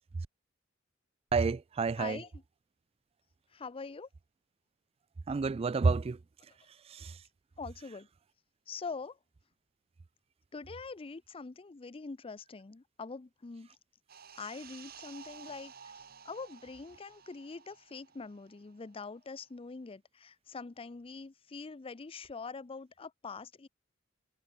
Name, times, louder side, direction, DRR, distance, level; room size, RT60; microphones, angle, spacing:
voice 1, 1.3-2.2 5.3-6.2 6.9-7.2, right 4 dB, 30° right, 0.3 m, -29 dB
voice 2, 2.0-2.3 3.5-4.1 7.6-8.1 8.7-9.2 10.5-13.7 14.4-15.7 16.2-23.7, left 4 dB, 30° left, 0.5 m, -44 dB
sound 1, 14.1-19.2 19.4-19.6, right 7 dB, 50° right, 2.0 m, -53 dB
head